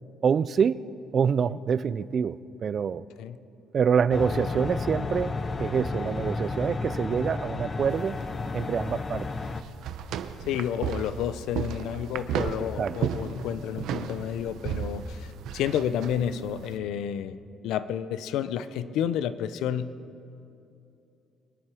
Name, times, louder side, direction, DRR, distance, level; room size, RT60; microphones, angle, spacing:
voice 1, 0.2-0.8 1.1-3.1 3.7-5.3 5.6-8.2 8.5-9.3 12.8-12.9, right 7 dB, 35° right, 17 dB, 0.3 m, -26 dB
sound 1, 4.1-9.6, left 3 dB, 25° left, 0.5 m, -32 dB
sound 2, 7.9-16.8, right 8 dB, 70° right, 0.8 m, -34 dB
voice 2, 10.4-17.4 17.6-19.9, left 9 dB, 80° left, 13 dB, 0.6 m, -30 dB
24.0 x 10.5 x 4.8 m, 2.7 s
cardioid pair, 155°, 0 cm